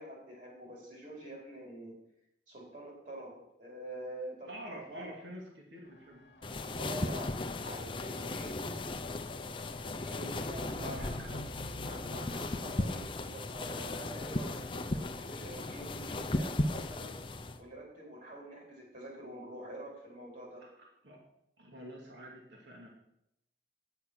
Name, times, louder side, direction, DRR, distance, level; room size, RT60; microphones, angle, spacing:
voice 1, 0.0-2.0 2.5-5.0 6.7-8.6 10.1-11.4 11.8-17.2 17.6-20.6, right 1 dB, 45° right, -2 dB, 4.3 m, -46 dB
voice 2, 4.5-6.2 10.8-11.3 20.6-21.2 21.6-22.9, equal, 85° right, -1 dB, 2.5 m, -47 dB
sound 1, 5.8-15.4 16.2-16.3, left 1 dB, 75° left, 1.1 m, -51 dB
sound 2, 6.4-17.6, left 2 dB, 30° left, 0.6 m, -36 dB
9.9 x 7.0 x 6.4 m, 0.79 s
head